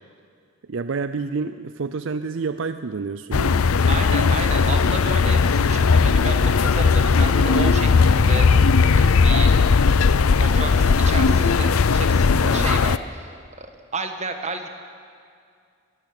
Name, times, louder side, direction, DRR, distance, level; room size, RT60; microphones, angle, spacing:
voice 1, 0.7-3.7 12.5-12.7, right 4 dB, 60° right, 11 dB, 0.5 m, -29 dB
sound 1, 3.3-13.0, left 5 dB, 85° left, 0.6 m, -17 dB
voice 2, 3.9-8.5 8.9-10.0 10.4-13.7 13.9-14.7, right 3 dB, 30° right, 5 dB, 1.6 m, -32 dB
22.0 x 14.0 x 8.9 m, 2.3 s
head